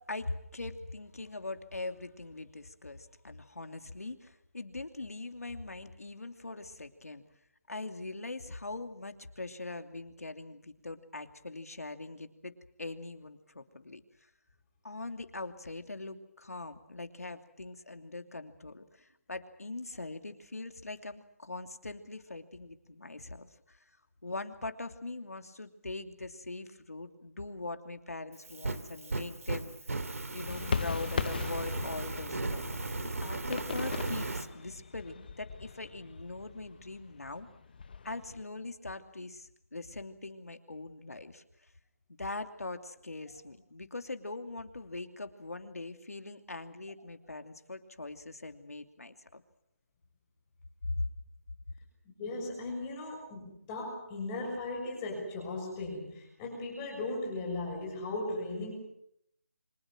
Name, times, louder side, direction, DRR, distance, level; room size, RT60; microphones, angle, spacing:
voice 1, 0.0-7.2 7.7-12.5 12.8-14.0 14.8-23.9 24.2-30.0 30.3-32.8 33.0-37.5 38.0-41.4 42.2-49.4 50.9-51.1, left 2 dB, 80° left, 7 dB, 2.8 m, -42 dB
Fire, 28.3-34.5, right 3 dB, 70° right, 2.8 m, -36 dB
sound 1, 30.5-38.4, left 5 dB, 35° left, 1.0 m, -39 dB
voice 2, 52.2-58.7, left 2 dB, 15° left, 0 dB, 6.4 m, -37 dB
29.0 x 25.0 x 6.2 m, 0.73 s
figure-of-eight pair, 165°, 8 cm